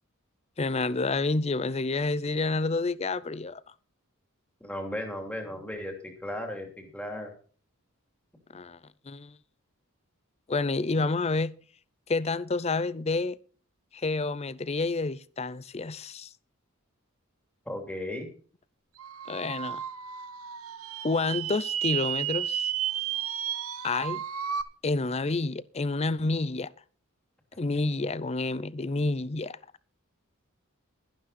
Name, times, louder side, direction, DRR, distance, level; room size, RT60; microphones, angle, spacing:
voice 1, 0.6-3.6 8.5-8.8 9.1-9.3 10.5-11.5 12.1-13.4 13.9-16.3 19.3-19.8 21.0-22.7 23.8-24.2 24.8-26.7 27.6-29.6, left 3 dB, 30° left, 0.5 m, -29 dB
voice 2, 4.6-7.3 17.7-18.3, left 1 dB, 5° left, 2.9 m, -36 dB
sound 1, 19.0-24.6, right 10 dB, 85° right, 1.1 m, -33 dB
12.5 x 11.5 x 4.3 m
head